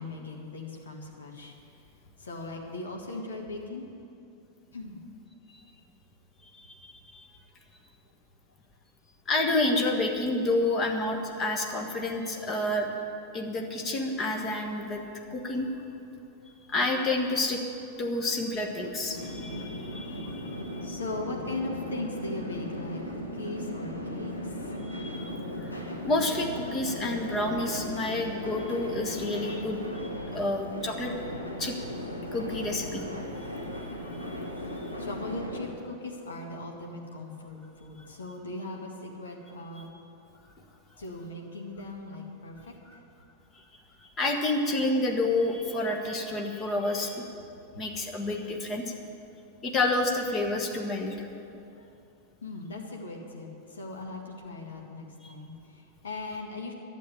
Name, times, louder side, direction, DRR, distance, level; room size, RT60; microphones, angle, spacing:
voice 1, 0.0-1.5 2.2-3.9 4.7-5.0 15.0-15.1 16.4-16.6 20.8-24.8 34.6-39.9 41.0-43.0 47.7-47.8 51.7-51.9 52.4-56.7, left 2 dB, 70° left, 0 dB, 2.0 m, -39 dB
voice 2, 6.5-7.3 9.3-12.9 13.3-15.0 15.3-15.7 16.7-17.6 18.0-20.9 24.8-25.7 26.0-31.1 31.6-31.8 32.3-33.0 33.5-33.8 34.3-34.4 34.8-34.9 44.2-47.2 47.8-48.9 49.6-51.3, left 2 dB, 25° left, 2 dB, 1.4 m, -29 dB
sound 1, 19.1-35.7, left 1 dB, 85° left, 1.5 m, -37 dB
12.0 x 7.4 x 9.9 m, 2.6 s
figure-of-eight pair, 90°, 0 cm